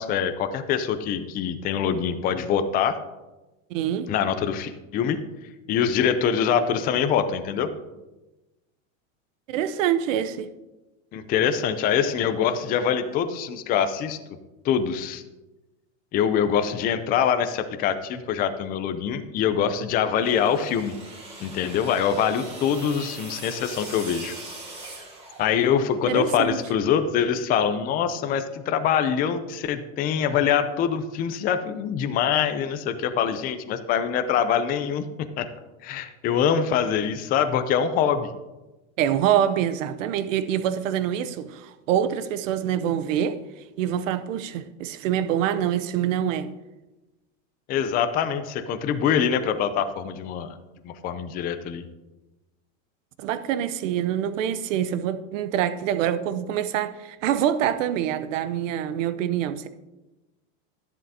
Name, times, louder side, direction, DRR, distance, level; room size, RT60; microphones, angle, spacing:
voice 1, 0.0-3.0 4.1-5.2 5.7-7.7 11.1-14.2 14.6-15.2 16.1-20.9 21.4-24.3 25.4-35.5 35.8-38.3 47.7-50.5 50.8-51.8, left 8 dB, 25° left, 0.5 m, -24 dB
voice 2, 3.7-4.1 9.5-10.5 26.0-26.6 39.0-43.4 43.8-46.5 53.2-59.7, right 10 dB, 75° right, 0.8 m, -25 dB
sound 1, 20.1-25.9, right 2 dB, 15° right, 2.1 m, -41 dB
11.0 x 11.0 x 2.8 m
supercardioid pair, 150°, 39 cm